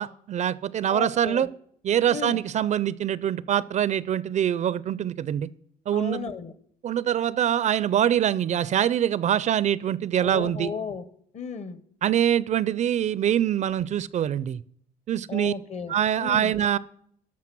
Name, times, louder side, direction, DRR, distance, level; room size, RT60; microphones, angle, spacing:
voice 1, 0.0-1.5 1.8-5.5 5.9-6.3 6.8-10.7 12.0-14.6 15.1-15.5 15.9-16.8, right 10 dB, 45° right, 20 dB, 0.4 m, -24 dB
voice 2, 0.9-1.5 2.1-2.4 5.9-6.5 10.2-11.0 11.3-11.8 15.3-15.9 16.2-16.5, left 6 dB, 40° left, 15 dB, 1.0 m, -34 dB
13.5 x 5.8 x 6.0 m, 0.66 s
cardioid pair, 110°, 17 cm